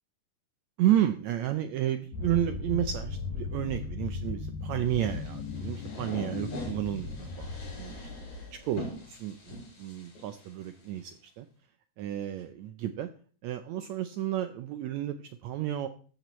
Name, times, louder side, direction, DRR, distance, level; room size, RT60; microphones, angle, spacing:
voice 1, 0.8-8.0 8.5-11.5 12.0-13.1 13.4-15.9, right 12 dB, 90° right, 9 dB, 1.5 m, -31 dB
sound 1, 2.1-8.9, left 4 dB, 90° left, 3.4 m, -37 dB
sound 2, 4.9-11.0, left 2 dB, 60° left, 6.0 m, -44 dB
14.5 x 10.5 x 3.1 m, 0.43 s
omnidirectional pair, 3.9 m